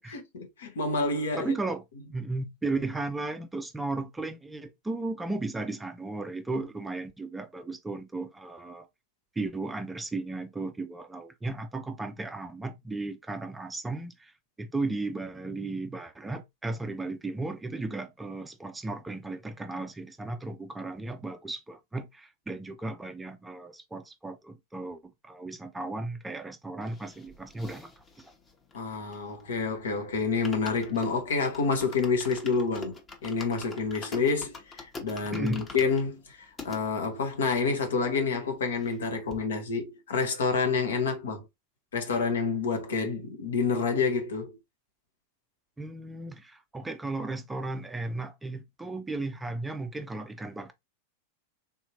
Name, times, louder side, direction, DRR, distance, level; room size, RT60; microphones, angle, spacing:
voice 1, 0.1-1.5 28.7-36.4 36.6-41.4 41.9-44.5, left 4 dB, 65° left, 0.9 m, -28 dB
voice 2, 1.4-8.9 9.4-14.3 14.6-27.9 28.2-28.3 35.3-35.6 45.8-50.7, right 2 dB, 10° right, 0.4 m, -35 dB
sound 1, 26.8-29.6 29.9-30.0 30.3-36.8 37.4-37.5 37.6-37.7 38.1-39.0 39.3-39.4, left 3 dB, 20° left, 0.9 m, -45 dB
3.5 x 2.8 x 2.8 m
figure-of-eight pair, 90°, 0 cm